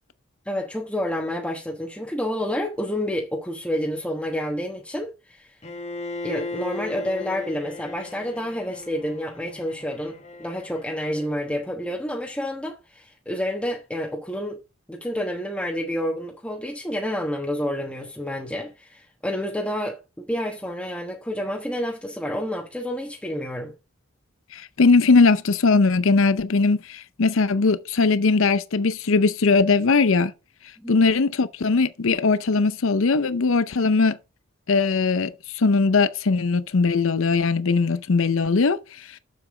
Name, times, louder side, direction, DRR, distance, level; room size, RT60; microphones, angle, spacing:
voice 1, 0.5-5.5 6.2-14.6 14.9-23.7 30.8-31.0, equal, 5° left, 1.1 m, -29 dB
Bowed string instrument, 5.6-11.6, left 3 dB, 30° left, 1.2 m, -37 dB
voice 2, 24.5-30.3 30.9-34.2 34.7-38.8, left 4 dB, 65° left, 0.6 m, -20 dB
7.0 x 6.9 x 4.9 m
head